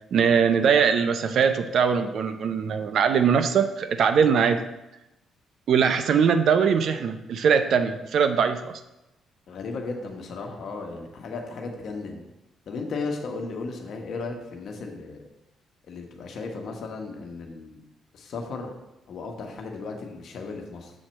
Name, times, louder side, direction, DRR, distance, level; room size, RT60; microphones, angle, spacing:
voice 1, 0.1-4.6 5.7-8.7, right 6 dB, 65° right, 9 dB, 0.5 m, -21 dB
voice 2, 9.5-12.2 12.7-15.2 15.9-17.8 18.1-18.7 19.1-20.9, left 3 dB, 65° left, 2 dB, 1.1 m, -35 dB
6.4 x 4.4 x 6.4 m, 0.95 s
cardioid pair, 90°, 0 cm